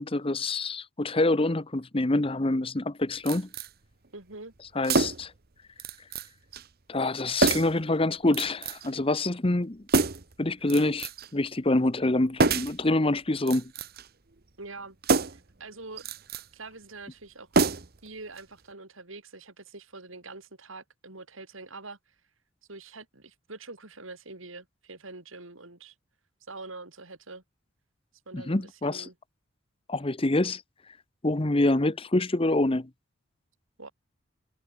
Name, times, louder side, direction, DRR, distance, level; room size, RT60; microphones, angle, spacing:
voice 1, 0.0-3.5 4.7-5.3 6.9-9.8 10.4-13.7 28.3-29.1 29.9-30.6 31.2-32.9, left 2 dB, 25° left, 0.9 m, -26 dB
sound 1, 3.3-3.7 4.8-5.4 5.8-6.3 6.5-6.7 7.4-7.8 8.3-8.9 9.9-10.3 10.7-11.3 12.4-12.8 13.4-14.1 15.0-15.5 16.0-16.4 17.5-18.1 18.4-18.5, right 3 dB, 50° right, 1.1 m, -26 dB
voice 2, 4.1-4.5 14.6-15.0 15.3-16.0 16.5-17.5 18.0-22.1 22.7-25.9 26.5-27.4 28.3-29.1 33.8-33.9, right 3 dB, 75° right, 4.3 m, -44 dB
head